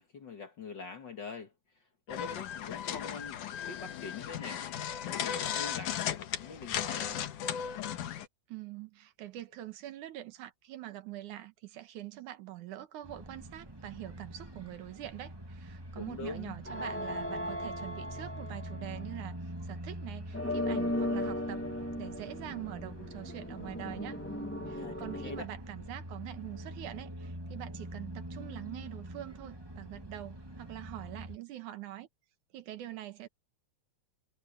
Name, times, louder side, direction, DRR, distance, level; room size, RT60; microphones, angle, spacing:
voice 1, 0.0-4.7 5.1-7.3 16.0-16.5 24.8-25.5, left 5 dB, 45° left, 1.8 m, -44 dB
sound 1, 2.1-8.3, left 9 dB, 85° left, 2.9 m, -36 dB
voice 2, 8.5-21.6 22.0-24.2 24.7-32.1 32.5-33.3, right 14 dB, 80° right, 2.7 m, -44 dB
sound 2, 13.0-31.4, right 1 dB, 10° right, 1.5 m, -45 dB
sound 3, 16.6-19.1 20.3-25.4, left 1 dB, 10° left, 0.8 m, -37 dB
omnidirectional pair, 3.5 m